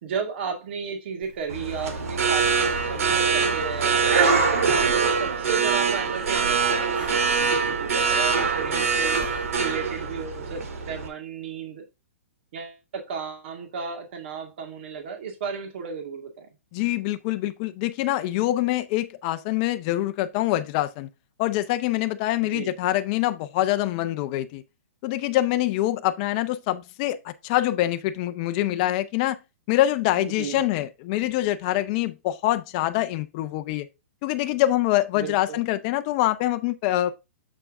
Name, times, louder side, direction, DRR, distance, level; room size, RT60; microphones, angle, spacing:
voice 1, 0.0-11.8 12.5-16.5 22.4-22.7 30.2-30.6 35.1-35.6, right 6 dB, 50° right, 2.0 m, -34 dB
Breathing, 1.2-9.6, right 2 dB, 15° right, 1.3 m, -43 dB
sound 1, 1.5-11.1, right 5 dB, 80° right, 1.8 m, -23 dB
voice 2, 16.7-21.1 21.4-24.6 25.0-29.4 29.7-33.9 34.2-37.1, left 15 dB, 30° left, 0.5 m, -25 dB
7.0 x 4.6 x 3.5 m
hypercardioid pair, 160°, 8 cm